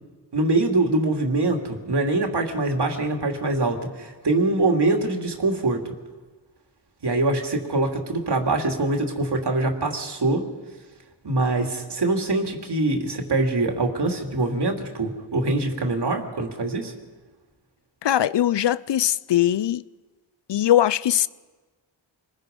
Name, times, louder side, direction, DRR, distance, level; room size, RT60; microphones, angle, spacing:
voice 1, 0.3-5.8 7.0-10.5 11.2-16.9, right 2 dB, 60° right, 2.9 m, -24 dB
voice 2, 18.0-19.8 20.5-21.3, left 11 dB, 65° left, 0.6 m, -20 dB
26.0 x 21.0 x 5.4 m
wide cardioid pair, 80°, 45 cm